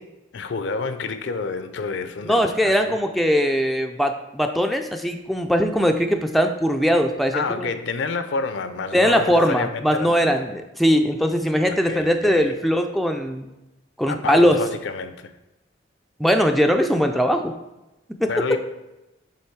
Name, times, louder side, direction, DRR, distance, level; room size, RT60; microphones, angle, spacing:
voice 1, 0.3-3.0 7.3-10.3 11.7-12.6 14.1-15.3 18.3-18.6, left 4 dB, 65° left, 10 dB, 0.5 m, -29 dB
voice 2, 2.2-7.7 8.9-13.5 14.0-14.6 16.2-17.5 18.2-18.3, equal, ahead, 4 dB, 0.3 m, -20 dB
7.9 x 3.0 x 4.5 m, 0.97 s
head